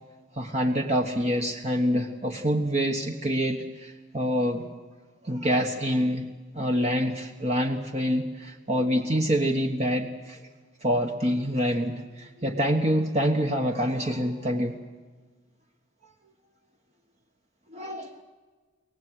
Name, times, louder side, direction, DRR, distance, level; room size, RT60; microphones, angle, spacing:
voice 1, 0.4-4.6 5.2-6.2 6.5-10.4 10.8-14.8 17.7-18.2, equal, 35° right, 3 dB, 1.3 m, -26 dB
24.0 x 18.5 x 7.7 m, 1.4 s
head